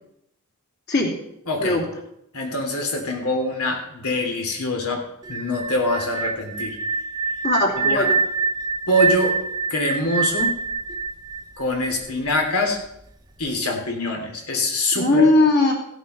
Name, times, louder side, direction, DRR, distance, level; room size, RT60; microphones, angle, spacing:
voice 1, 1.5-1.8 2.3-5.0 5.3-6.8 7.8-8.1 8.9-9.3 9.7-10.5 11.6-12.8 13.4-15.3, left 1 dB, 85° left, 3 dB, 3.1 m, -24 dB
sound 1, 5.2-12.1, right 4 dB, 20° right, 0.8 m, -25 dB
voice 2, 7.4-8.2 14.9-15.7, left 2 dB, 45° left, 0 dB, 2.9 m, -19 dB
16.0 x 8.1 x 5.5 m, 0.79 s
head